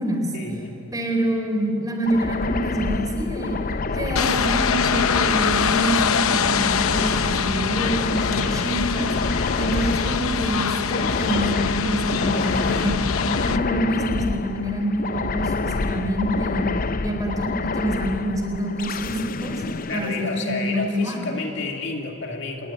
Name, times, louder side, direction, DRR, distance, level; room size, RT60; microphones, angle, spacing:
voice 1, 0.3-0.8 19.9-22.7, left 3 dB, 55° left, 2 dB, 2.5 m, -30 dB
voice 2, 0.9-3.6 3.9-9.1 9.6-13.0 13.4-16.7 17.0-19.6 19.9-21.3, right 1 dB, 15° right, 2 dB, 4.2 m, -26 dB
sound 1, 2.0-20.9, left 3 dB, 40° left, 0.5 m, -28 dB
sound 2, 4.2-13.6, left 6 dB, 85° left, 0.8 m, -24 dB
sound 3, 13.2-18.2, left 2 dB, 60° right, 3.4 m, -40 dB
28.0 x 20.5 x 10.0 m, 2.9 s
head